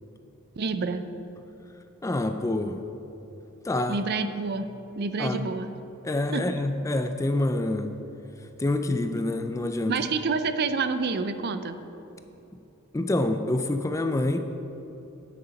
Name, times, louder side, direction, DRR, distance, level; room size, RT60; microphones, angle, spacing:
voice 1, 0.6-1.1 3.9-4.7 5.0-5.7 6.3-6.5 9.9-11.8, right 4 dB, 50° right, 10 dB, 0.4 m, -28 dB
voice 2, 2.0-2.9 3.6-4.0 5.2-5.5 6.0-7.9 8.6-10.0 12.9-14.4, left 2 dB, 15° left, 8 dB, 0.3 m, -26 dB
9.6 x 6.6 x 5.1 m, 3.0 s
head